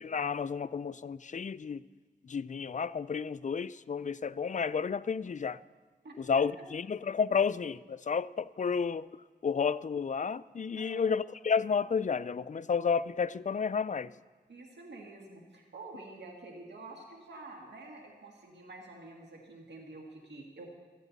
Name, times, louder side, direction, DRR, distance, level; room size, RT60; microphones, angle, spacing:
voice 1, 0.0-1.8 2.2-5.6 6.2-9.1 9.4-14.1, left 6 dB, 45° left, 15 dB, 0.4 m, -31 dB
voice 2, 6.0-6.4 10.8-11.1 14.5-20.7, right 2 dB, 85° right, 0 dB, 1.8 m, -48 dB
26.0 x 10.0 x 4.1 m, 1.4 s
cardioid pair, 60°, 18 cm